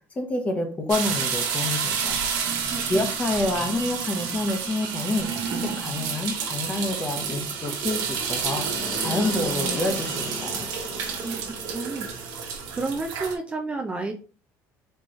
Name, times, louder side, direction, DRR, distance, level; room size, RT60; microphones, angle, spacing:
voice 1, 0.1-2.2 2.9-8.7 9.0-10.7, left 2 dB, 20° left, 4 dB, 1.0 m, -28 dB
sound 1, 0.9-13.4, right 6 dB, 80° right, 1.1 m, -29 dB
voice 2, 2.7-3.1 11.2-12.1 12.7-14.1, right 3 dB, 20° right, 2 dB, 0.5 m, -31 dB
Fixed-wing aircraft airplane, 5.7-13.0, left 3 dB, 65° left, 2.2 m, -39 dB
4.4 x 3.1 x 3.1 m, 0.37 s
cardioid pair, 125°, 6 cm